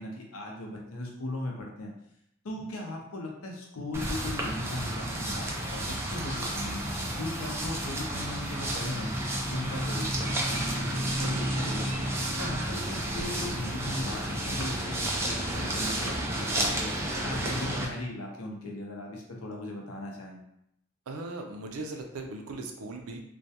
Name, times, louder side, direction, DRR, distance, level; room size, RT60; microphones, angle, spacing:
voice 1, 0.0-1.9 2.4-6.8 7.2-9.2 9.5-11.9 12.4-16.9 17.2-20.4, left 1 dB, 85° left, 0 dB, 0.6 m, -38 dB
sound 1, 3.9-17.9, right 1 dB, 10° right, 0.3 m, -31 dB
voice 2, 12.6-13.1 21.1-23.2, right 2 dB, 85° right, 3 dB, 0.4 m, -39 dB
2.3 x 2.2 x 2.7 m, 0.76 s
head